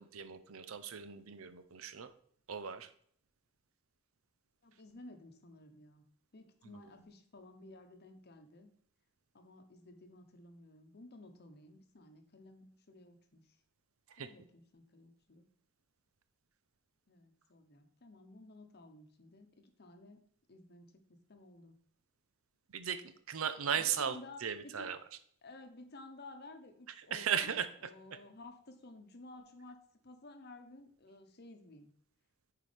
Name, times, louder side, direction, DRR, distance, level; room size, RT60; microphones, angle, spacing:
voice 1, 0.0-2.1 2.5-2.9 14.1-14.3 22.7-25.0 27.0-27.7, right 7 dB, 80° right, 11 dB, 0.6 m, -37 dB
voice 2, 4.6-6.0 6.3-8.7 9.3-13.5 14.1-15.5 17.1-20.2 20.5-21.7 23.7-24.9 25.4-27.6 27.8-31.9, left 2 dB, 50° left, 6 dB, 0.9 m, -54 dB
9.4 x 4.7 x 3.4 m, 0.63 s
head